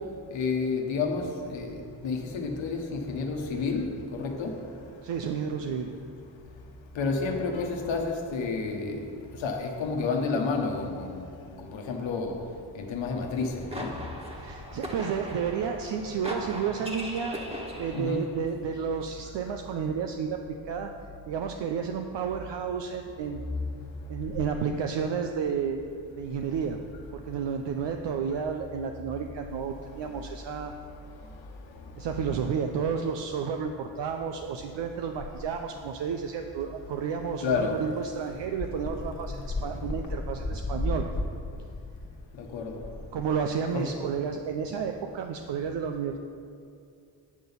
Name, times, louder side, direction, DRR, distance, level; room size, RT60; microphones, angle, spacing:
voice 1, 0.3-4.5 6.9-11.3 11.6-12.3 12.7-13.9 17.9-18.2 37.4-37.8 42.4-42.8 43.7-43.9, left 4 dB, 80° left, 2 dB, 1.1 m, -30 dB
voice 2, 5.0-5.9 14.4-17.5 17.8-20.9 21.3-23.4 24.1-25.8 26.2-26.8 27.1-30.7 32.0-41.1 43.1-46.2, right 6 dB, 70° right, 4 dB, 0.6 m, -31 dB
sound 1, 13.3-18.4, equal, 15° right, 1.5 m, -39 dB
sound 2, 38.6-43.8, left 2 dB, 45° left, 1.6 m, -34 dB
8.5 x 3.9 x 7.0 m, 2.5 s
supercardioid pair, 50°, 45 cm